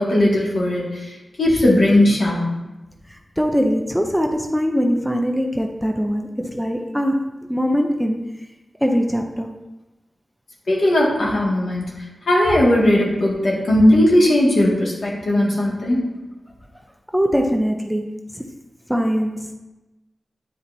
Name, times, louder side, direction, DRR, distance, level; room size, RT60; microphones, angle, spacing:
voice 1, 0.0-2.6 10.7-11.8 12.3-16.1, left 1 dB, 75° left, -4 dB, 1.8 m, -17 dB
voice 2, 3.1-8.4 8.8-9.5 17.1-18.4 18.9-19.6, equal, ahead, 3 dB, 0.5 m, -22 dB
9.5 x 4.2 x 2.6 m, 1.0 s
wide cardioid pair, 130°, 0 cm